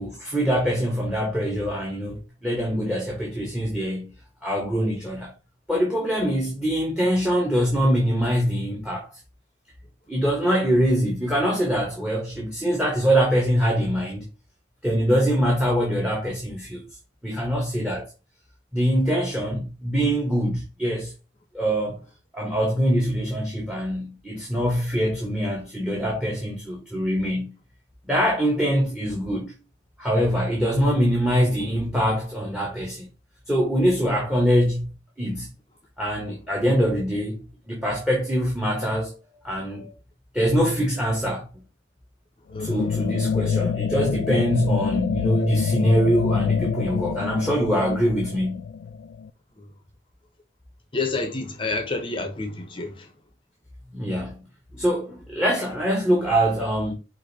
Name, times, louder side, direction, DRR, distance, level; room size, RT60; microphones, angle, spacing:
voice 1, 0.0-4.1 4.4-5.3 5.7-9.1 10.1-14.2 14.8-16.8 17.2-18.1 18.7-21.1 21.5-22.0 22.3-27.6 28.1-29.6 30.0-33.1 33.5-34.9 35.2-35.5 36.0-37.4 37.7-39.1 39.4-39.9 40.3-41.5 42.6-48.7 53.9-54.4 54.7-56.9, equal, 5° right, 1.0 m, -23 dB
sound 1, 42.5-49.3, left 6 dB, 75° left, 0.3 m, -26 dB
voice 2, 42.5-42.9 50.9-53.1, left 3 dB, 30° left, 0.6 m, -29 dB
4.9 x 2.6 x 4.0 m
head